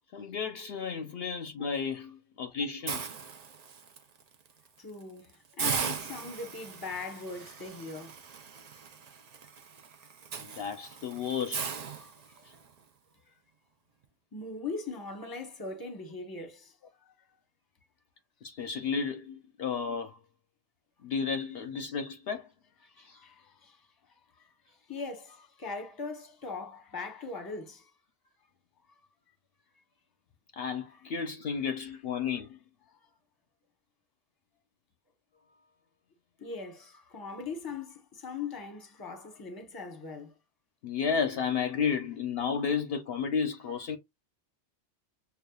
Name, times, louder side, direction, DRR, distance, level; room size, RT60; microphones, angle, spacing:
voice 1, 0.1-3.1 10.4-11.7 18.4-20.2 21.0-22.5 23.0-23.2 30.6-32.6 40.8-44.0, left 6 dB, 65° left, 0.7 m, -32 dB
Hiss, 2.9-4.0 4.5-4.7 5.0-5.1 5.6-12.7, right 6 dB, 45° right, 0.6 m, -38 dB
voice 2, 4.8-8.2 12.0-12.4 13.3-13.4 14.3-17.1 22.9-23.8 24.4-27.9 36.4-40.3, left 4 dB, 20° left, 0.8 m, -40 dB
6.7 x 2.4 x 2.3 m
omnidirectional pair, 1.2 m